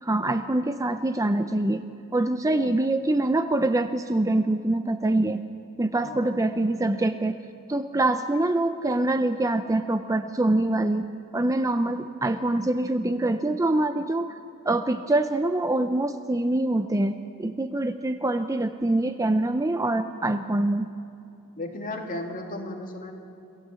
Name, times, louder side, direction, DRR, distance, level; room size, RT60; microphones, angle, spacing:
voice 1, 0.0-1.8 2.1-5.4 5.8-7.4 7.7-11.0 11.3-14.4 14.6-20.9, right 2 dB, 15° right, 9 dB, 0.5 m, -24 dB
voice 2, 5.9-6.4 21.6-23.1, left 1 dB, 40° left, 1 dB, 2.6 m, -35 dB
26.5 x 15.0 x 7.6 m, 2.6 s
head